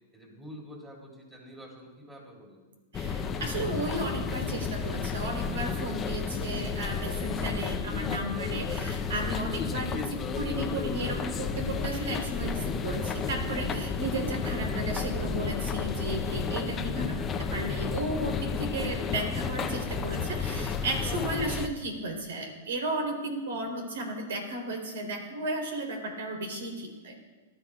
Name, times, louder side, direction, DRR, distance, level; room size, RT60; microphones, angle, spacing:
voice 1, 0.1-2.6, equal, 15° right, -2 dB, 3.9 m, -48 dB
sound 1, 2.9-21.7, left 5 dB, 20° left, 0.8 m, -32 dB
voice 2, 2.9-17.2 17.5-27.2, right 1 dB, 80° right, 2 dB, 3.8 m, -34 dB
19.0 x 12.5 x 2.5 m, 1.3 s
hypercardioid pair, 140°, 0 cm